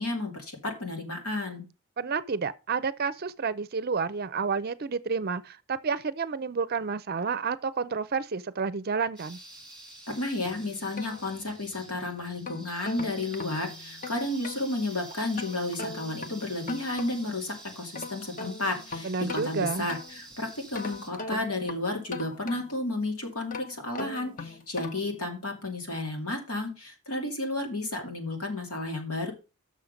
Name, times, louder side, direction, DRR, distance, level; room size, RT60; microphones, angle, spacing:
voice 1, 0.0-1.6 10.1-29.3, left 2 dB, 80° left, 2.6 m, -32 dB
voice 2, 2.0-9.4 19.0-19.9, right 5 dB, 45° right, 0.5 m, -30 dB
sound 1, 9.2-21.1, right 2 dB, 5° left, 2.0 m, -48 dB
sound 2, 10.5-11.8 12.2-14.7 15.4-17.4 17.8-20.3 20.7-22.9 23.4-25.2, left 3 dB, 35° left, 0.8 m, -40 dB
7.3 x 6.4 x 5.1 m
head